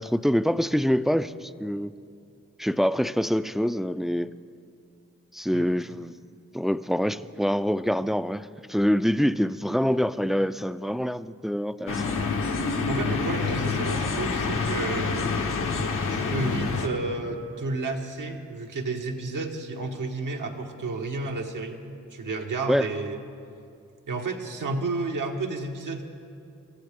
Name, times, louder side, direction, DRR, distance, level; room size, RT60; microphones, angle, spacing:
voice 1, 0.0-1.9 2.6-4.3 5.3-6.2 6.5-12.0 22.7-22.9, equal, ahead, 13 dB, 0.4 m, -25 dB
sound 1, 11.9-16.9, left 4 dB, 85° left, 1.3 m, -27 dB
voice 2, 12.9-15.7 16.1-21.8 22.1-23.2 24.1-26.0, right 3 dB, 80° right, 2 dB, 1.6 m, -31 dB
24.5 x 15.0 x 3.7 m, 2.5 s
cardioid pair, 50°, 31 cm